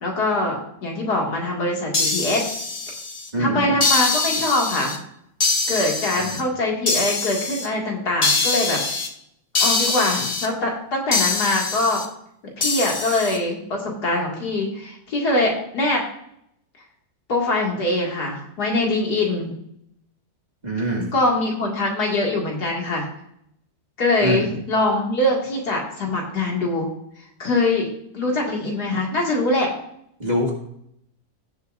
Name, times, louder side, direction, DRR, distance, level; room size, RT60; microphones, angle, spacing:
voice 1, 0.0-2.4 3.4-5.0 5.7-8.8 9.6-12.0 12.6-16.0 17.3-19.5 21.1-23.1 24.0-26.9 27.4-27.9 28.1-29.7, left 2 dB, 85° left, -1 dB, 2.8 m, -23 dB
sound 1, 1.9-3.3 3.8-5.0 5.4-6.4 6.9-7.7 8.2-9.1 9.5-10.5 11.1-12.1 12.6-13.4, left 3 dB, 30° left, 0.8 m, -23 dB
voice 2, 3.3-3.6 6.3-6.4 20.6-21.1 24.2-24.5 30.2-30.5, equal, 25° right, -1 dB, 2.0 m, -24 dB
17.0 x 7.1 x 2.6 m, 0.74 s
omnidirectional pair, 1.6 m